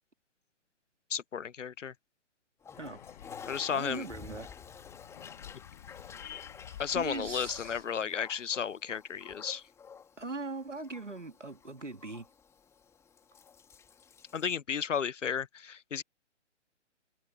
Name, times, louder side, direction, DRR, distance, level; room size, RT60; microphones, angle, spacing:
voice 1, 1.1-1.9 3.5-4.1 6.8-9.6 14.3-16.0, left 7 dB, 85° left, 0.5 m, -33 dB
Toilet flush, 2.6-14.6, left 6 dB, 5° left, 1.8 m, -51 dB
sound 1, 2.7-7.8, left 12 dB, 40° left, 4.1 m, -51 dB
voice 2, 3.7-4.5 6.6-7.8 10.2-12.3, right 3 dB, 85° right, 2.4 m, -40 dB
figure-of-eight pair, 130°, 36 cm